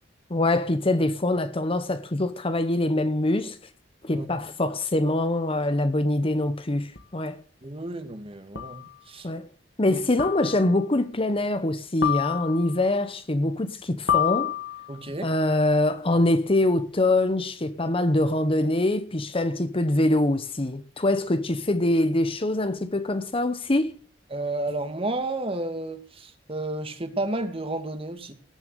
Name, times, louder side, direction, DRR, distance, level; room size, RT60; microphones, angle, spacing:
voice 1, 0.3-3.6 4.0-7.4 9.2-9.5 9.8-14.5 15.2-24.0, left 1 dB, 30° left, 0.9 m, -24 dB
sound 1, 7.0-7.1 8.6-8.9 10.2-10.8 12.0-12.8 14.1-15.0, left 10 dB, 85° left, 1.7 m, -28 dB
voice 2, 7.6-9.3 9.9-10.0 14.9-15.3 24.3-28.3, right 2 dB, 30° right, 1.9 m, -32 dB
18.0 x 7.0 x 6.7 m
head